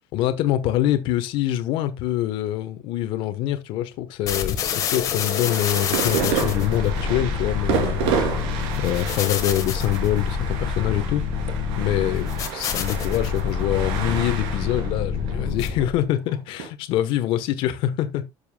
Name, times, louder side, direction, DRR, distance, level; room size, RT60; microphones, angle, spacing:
voice 1, 0.1-8.0 8.8-11.2 11.8-18.2, left 13 dB, 55° left, 1.1 m, -25 dB
sound 1, 4.3-16.1, left 6 dB, 35° left, 1.5 m, -27 dB
sound 2, 5.2-16.7, right 6 dB, 80° right, 3.0 m, -30 dB
12.5 x 6.9 x 2.2 m
cardioid pair, 180°, 10 cm